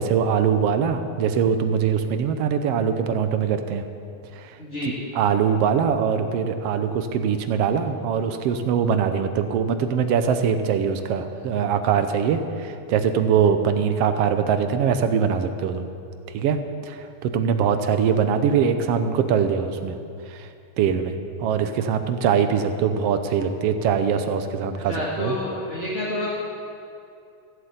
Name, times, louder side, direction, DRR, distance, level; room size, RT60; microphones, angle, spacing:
voice 1, 0.0-3.8 4.4-4.5 4.8-15.9 16.3-17.0 17.2-20.0 20.3-20.5 20.8-21.1 21.4-25.4, right 7 dB, 70° right, 8 dB, 1.5 m, -22 dB
voice 2, 4.6-5.1 24.8-26.3, left 1 dB, 25° left, -8 dB, 2.0 m, -29 dB
15.0 x 8.1 x 8.0 m, 2.5 s
omnidirectional pair, 3.4 m